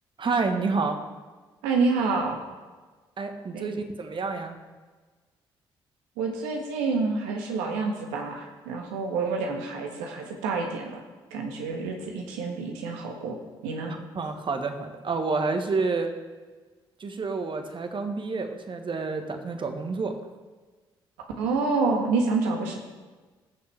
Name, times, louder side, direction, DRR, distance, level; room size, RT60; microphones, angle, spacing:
voice 1, 0.2-1.0 3.2-4.6 13.9-16.1 17.0-20.2, right 4 dB, 45° right, 6 dB, 1.4 m, -29 dB
voice 2, 1.6-2.4 3.5-3.7 6.2-11.0 11.3-13.4 13.6-13.9 21.4-22.8, right 4 dB, 80° right, 2 dB, 1.5 m, -28 dB
18.0 x 6.9 x 3.5 m, 1.3 s
hypercardioid pair, 45°, 12 cm